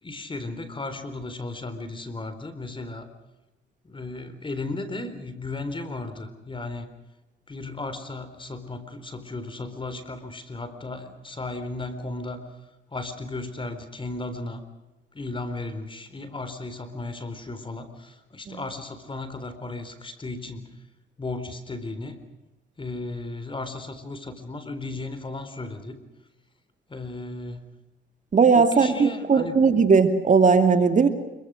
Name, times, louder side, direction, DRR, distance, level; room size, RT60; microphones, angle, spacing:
voice 1, 0.0-3.1 3.8-6.9 7.5-12.4 12.9-14.6 15.1-20.7 21.2-22.2 22.8-26.0 26.9-27.7 28.5-29.6, left 2 dB, 25° left, 11 dB, 4.0 m, -35 dB
voice 2, 28.3-31.1, right 5 dB, 40° right, 8 dB, 2.3 m, -18 dB
26.0 x 23.0 x 6.4 m, 1.0 s
cardioid pair, 90°, 20 cm